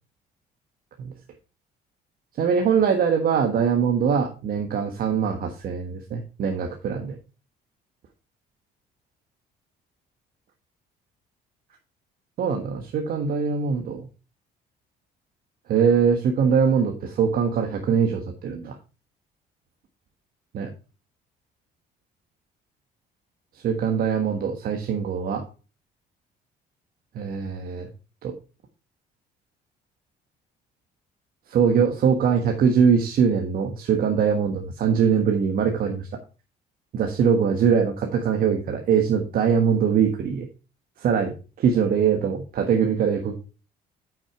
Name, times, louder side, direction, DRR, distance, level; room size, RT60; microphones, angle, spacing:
voice 1, 2.4-7.2 12.4-14.1 15.7-18.8 20.5-20.7 23.5-25.4 27.1-27.9 28.2-28.3 31.5-36.2 36.9-40.5 41.0-43.3, right 6 dB, 60° right, 4 dB, 1.4 m, -22 dB
8.6 x 6.3 x 4.5 m, 0.33 s
cardioid pair, 110°, 17 cm